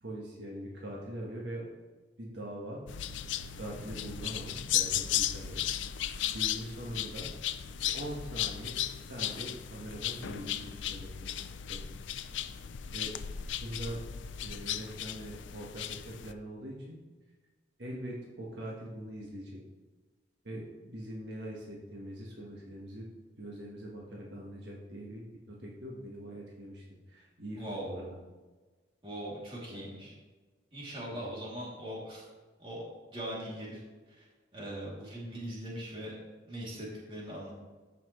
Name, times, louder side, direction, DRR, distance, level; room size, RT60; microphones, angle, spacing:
voice 1, 0.0-1.7 2.2-2.8 3.5-5.6 6.2-7.3 7.8-11.3 11.7-11.9 12.9-13.1 13.6-14.0 14.4-17.0 17.8-19.6 20.4-23.1 23.4-28.2 29.7-30.0 31.1-31.3, right 1 dB, 65° right, -3 dB, 1.4 m, -42 dB
sound 1, 2.9-16.3, left 11 dB, 80° left, 0.4 m, -35 dB
voice 2, 27.6-27.9 29.0-30.1 30.7-32.2 32.6-32.8 33.1-33.8 34.2-34.3 34.5-36.2 36.5-37.5, right 1 dB, 30° right, -5 dB, 2.9 m, -40 dB
14.0 x 6.0 x 3.2 m, 1.3 s
head